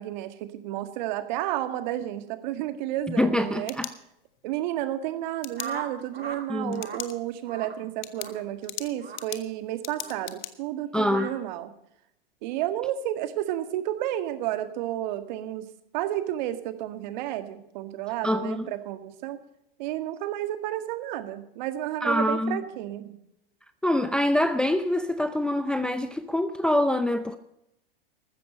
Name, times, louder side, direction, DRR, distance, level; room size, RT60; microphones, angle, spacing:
voice 1, 0.0-3.7 4.4-11.7 12.4-15.7 15.9-19.4 19.8-23.2, right 13 dB, 50° right, 1.8 m, -31 dB
voice 2, 3.1-3.9 6.5-6.8 10.9-11.3 18.2-18.7 22.0-22.6 23.8-27.4, left 1 dB, 5° left, 0.6 m, -25 dB
sound 1, 3.3-4.5 5.4-5.7 6.7-7.1 7.5-7.6 8.0-10.5, left 15 dB, 50° left, 1.4 m, -38 dB
sound 2, 5.6-6.4 6.7-7.0 7.5-7.8 8.1-8.4 9.0-9.2 10.0-10.2 11.1-11.3, right 5 dB, 90° right, 2.4 m, -38 dB
14.5 x 13.5 x 5.4 m
hypercardioid pair, 105°, 29 cm